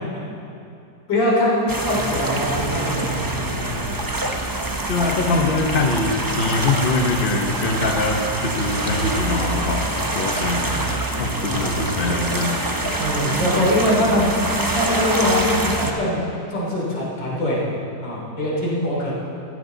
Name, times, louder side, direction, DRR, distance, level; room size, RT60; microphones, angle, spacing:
voice 1, 1.1-3.8 11.4-11.8 13.0-14.3 14.7-16.2 16.5-17.6 18.0-19.1, left 1 dB, 75° left, -5 dB, 4.1 m, -22 dB
sound 1, 1.7-15.9, right 2 dB, 25° right, 0.4 m, -25 dB
voice 2, 4.9-12.5, left 3 dB, 35° left, 3 dB, 1.0 m, -23 dB
15.5 x 15.5 x 4.0 m, 2.7 s
omnidirectional pair, 2.0 m